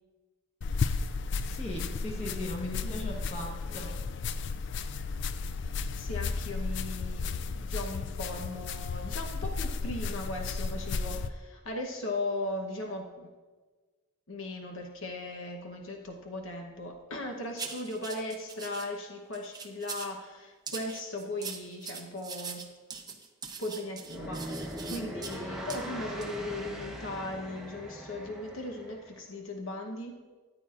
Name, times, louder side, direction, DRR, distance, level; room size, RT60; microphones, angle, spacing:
sound 1, 0.6-11.3, left 4 dB, 60° left, 0.3 m, -34 dB
voice 1, 1.4-4.0, left 1 dB, 30° left, -1 dB, 1.4 m, -38 dB
voice 2, 2.8-3.1 3.7-3.9 6.0-13.3 14.3-22.7 23.6-30.2, left 2 dB, 75° left, 2 dB, 1.0 m, -38 dB
sound 2, 17.6-18.9 19.3-20.2 20.7-25.4 25.7-25.8 26.2-26.3, right 5 dB, 20° right, 0.7 m, -42 dB
sound 3, 24.0-29.1, equal, 5° right, 1.1 m, -40 dB
14.0 x 8.9 x 2.5 m, 1.3 s
head